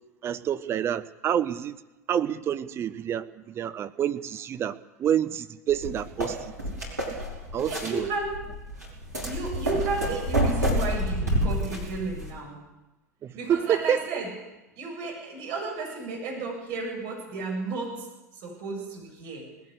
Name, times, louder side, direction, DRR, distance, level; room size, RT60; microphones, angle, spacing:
voice 1, 0.2-1.8 2.1-6.5 7.5-8.1 13.2-14.2, right 9 dB, 30° right, 0.9 m, -28 dB
sound 1, 5.7-12.3, equal, 80° right, 5.0 m, -29 dB
voice 2, 7.6-8.4 9.2-12.6 13.3-14.3 14.8-18.1 18.3-19.5, right 3 dB, 45° right, 7.6 m, -33 dB
20.0 x 16.5 x 8.1 m
figure-of-eight pair, 85°, 9 cm